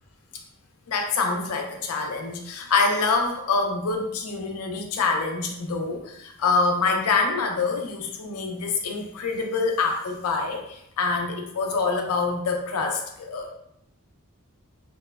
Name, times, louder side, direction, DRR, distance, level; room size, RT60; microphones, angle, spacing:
voice 1, 0.9-13.5, left 4 dB, 75° left, 3 dB, 0.4 m, -25 dB
2.9 x 2.0 x 2.3 m, 0.76 s
head